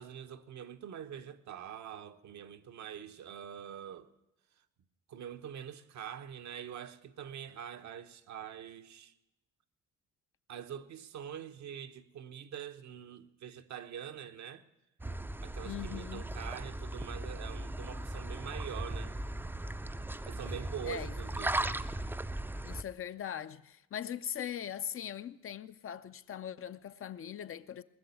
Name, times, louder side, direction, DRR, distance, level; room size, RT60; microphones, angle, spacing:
voice 1, 0.0-4.1 5.1-9.1 10.5-14.7 15.4-19.1 20.3-21.8, right 9 dB, 70° right, 1.0 m, -44 dB
sound 1, 15.0-22.8, right 1 dB, 5° right, 0.5 m, -38 dB
voice 2, 15.7-16.2 20.8-21.1 22.6-27.8, left 9 dB, 45° left, 0.6 m, -40 dB
20.0 x 6.9 x 9.5 m
cardioid pair, 90°, 30 cm